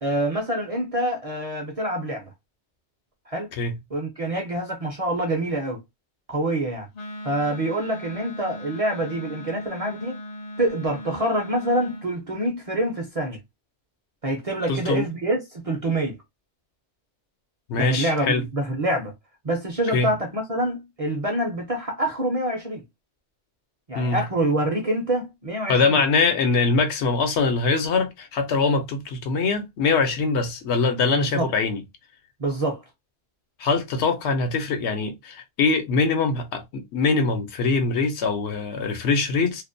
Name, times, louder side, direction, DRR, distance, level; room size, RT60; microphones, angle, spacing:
voice 1, 0.0-2.3 3.3-3.5 3.9-5.8 6.3-6.9 7.2-10.2 10.6-13.4 14.2-16.2 17.7-19.1 19.4-22.8 23.9-26.0 31.1-31.5 32.4-32.8, right 1 dB, 45° right, 0.5 m, -26 dB
Wind instrument woodwind instrument, 6.9-12.1, left 1 dB, 55° left, 0.4 m, -38 dB
voice 2, 14.7-15.1 17.7-18.5 19.9-20.1 23.9-24.2 25.7-31.8 33.6-39.6, left 4 dB, 80° left, 0.9 m, -23 dB
2.4 x 2.1 x 2.5 m
omnidirectional pair, 1.1 m